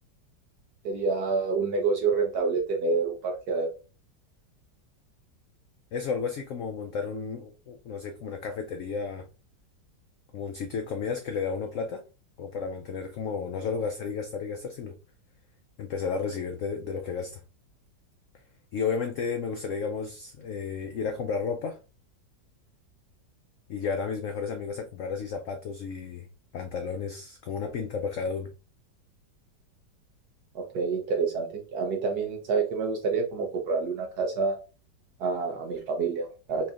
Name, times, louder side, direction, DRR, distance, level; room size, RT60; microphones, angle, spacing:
voice 1, 0.8-3.7 30.5-34.5 35.2-36.7, right 4 dB, 65° right, 1.3 m, -28 dB
voice 2, 5.9-9.3 10.3-12.0 12.4-15.0 15.8-17.4 18.7-21.8 23.7-26.3 26.5-28.5, left 5 dB, 90° left, 0.6 m, -32 dB
4.3 x 3.0 x 2.4 m
omnidirectional pair, 1.9 m